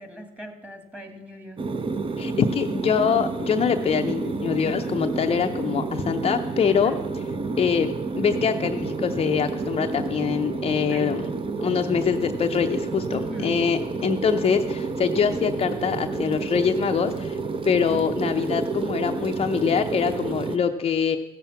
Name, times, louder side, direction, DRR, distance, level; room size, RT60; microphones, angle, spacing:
voice 1, 0.0-1.6 6.7-7.0 10.9-11.1 13.1-13.5, equal, 10° right, 6 dB, 2.0 m, -40 dB
sound 1, 1.6-20.6, right 4 dB, 30° right, 0.8 m, -29 dB
voice 2, 2.2-6.9 7.6-11.2 11.6-17.4 17.6-21.2, left 7 dB, 35° left, 5 dB, 0.6 m, -24 dB
15.5 x 7.2 x 5.8 m, 1.1 s
cardioid pair, 110°, 17 cm